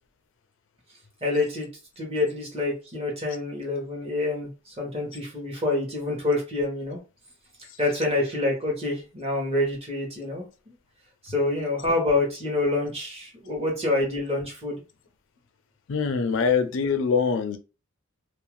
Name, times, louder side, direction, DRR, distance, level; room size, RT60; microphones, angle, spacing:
voice 1, 1.2-1.7 2.0-7.0 7.8-10.7 11.2-14.8, left 2 dB, 30° right, -1 dB, 1.0 m, -27 dB
voice 2, 15.9-17.6, left 5 dB, 60° left, 8 dB, 0.4 m, -23 dB
2.5 x 2.1 x 3.0 m, 0.31 s
head